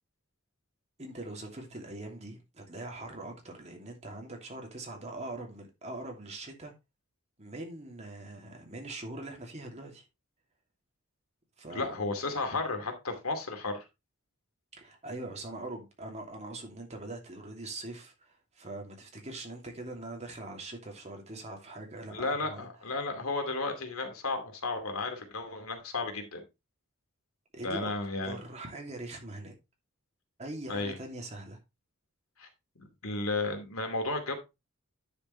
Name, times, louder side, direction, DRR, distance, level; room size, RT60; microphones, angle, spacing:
voice 1, 1.0-6.7 7.4-10.0 11.6-12.0 14.7-22.7 27.5-27.9 28.2-29.5 30.4-31.6, right 2 dB, 30° right, 2.8 m, -42 dB
voice 2, 11.7-13.8 22.1-26.4 27.6-28.4 30.7-31.0 32.4-32.5 32.8-34.3, left 3 dB, 85° left, 2.5 m, -33 dB
9.8 x 7.0 x 3.3 m
head